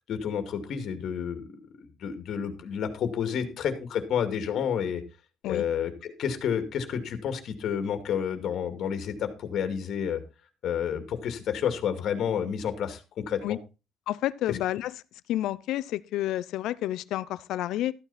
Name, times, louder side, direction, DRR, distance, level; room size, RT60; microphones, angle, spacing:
voice 1, 0.1-1.5 1.8-5.0 5.5-10.2 10.6-13.6 14.5-14.6, left 8 dB, 55° left, 2.2 m, -30 dB
voice 2, 14.1-14.9 15.3-17.9, left 14 dB, 75° left, 0.7 m, -30 dB
13.5 x 9.0 x 4.2 m
cardioid pair, 155°, 0 cm